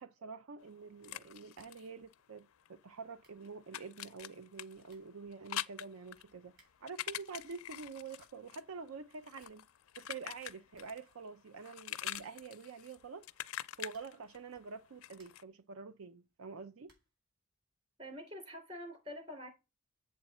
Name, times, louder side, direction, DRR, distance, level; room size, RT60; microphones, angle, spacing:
voice 1, 0.0-9.7 10.0-13.3 13.8-16.9, right 5 dB, 75° right, 0.5 m, -47 dB
sound 1, 0.6-2.8 3.0-11.2 11.4-15.4, left 12 dB, 80° left, 0.5 m, -45 dB
sound 2, 1.5-1.9 2.2-2.3 2.9-3.0 3.2-3.5 4.5-4.6 4.9-5.2 6.5-7.0 7.9-8.5 8.9-9.0 9.2-9.7 10.0-10.1 10.4-10.5 10.7-11.5 12.1-12.6 13.8-14.3 14.8-15.6 16.8-17.2, right 2 dB, 60° right, 4.1 m, -71 dB
voice 2, 18.0-19.5, equal, 30° right, 3.2 m, -46 dB
7.6 x 7.0 x 4.2 m
head